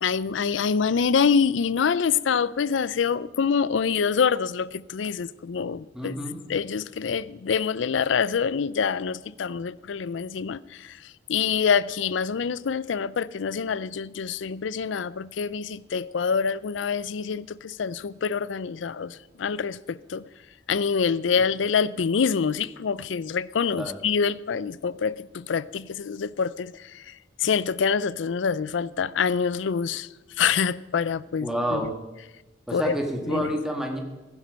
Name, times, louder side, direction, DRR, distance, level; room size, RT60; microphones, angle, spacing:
voice 1, 0.0-6.2 6.5-11.0 11.3-20.3 20.7-27.0 27.4-30.1 30.4-31.8 32.7-32.9 33.3-33.5, left 6 dB, 85° left, 0.4 m, -26 dB
voice 2, 5.9-6.4 23.8-24.0 31.4-31.9 32.7-34.0, equal, 5° right, 1.8 m, -28 dB
15.5 x 11.0 x 5.3 m
head